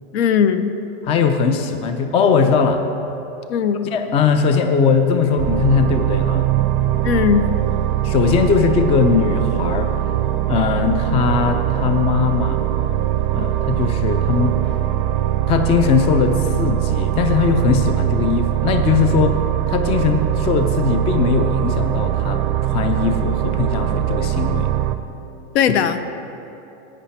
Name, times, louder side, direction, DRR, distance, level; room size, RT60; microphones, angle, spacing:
voice 1, 0.1-0.7 3.5-3.9 7.0-7.5 25.5-26.0, left 8 dB, 75° left, 11 dB, 0.7 m, -18 dB
voice 2, 1.0-2.8 3.9-6.5 8.0-9.9 10.5-12.6 13.3-14.5 15.5-19.4 19.7-24.7, left 5 dB, 20° left, 7 dB, 0.4 m, -19 dB
sound 1, 5.4-25.0, right 13 dB, 45° right, 0.5 m, -21 dB
11.0 x 9.1 x 4.4 m, 3.0 s
supercardioid pair, 145°, 32 cm